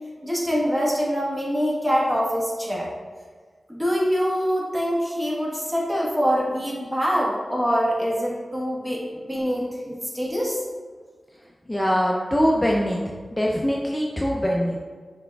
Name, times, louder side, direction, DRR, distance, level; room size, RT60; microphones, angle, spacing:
voice 1, 0.2-2.9 3.7-10.6, equal, 15° right, -4 dB, 1.2 m, -24 dB
voice 2, 9.3-9.9 11.7-13.0 13.3-14.8, equal, 15° left, -2 dB, 0.4 m, -23 dB
5.8 x 3.4 x 2.3 m, 1.5 s
wide cardioid pair, 70°, 0 cm